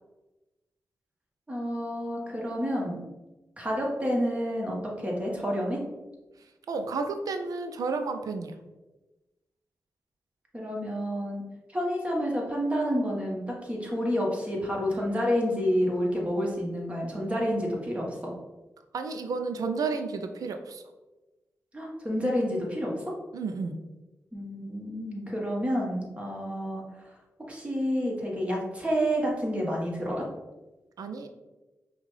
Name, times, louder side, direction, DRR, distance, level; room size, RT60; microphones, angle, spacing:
voice 1, 1.5-3.0 3.6-5.8 10.5-11.4 11.7-18.3 21.7-22.9 24.3-26.8 27.5-30.2, equal, 20° right, -3 dB, 1.4 m, -29 dB
voice 2, 6.7-8.5 18.9-20.8 23.3-23.8 31.0-31.3, right 4 dB, 80° right, 7 dB, 0.4 m, -31 dB
5.4 x 2.4 x 3.2 m, 1.1 s
cardioid pair, 50°, 6 cm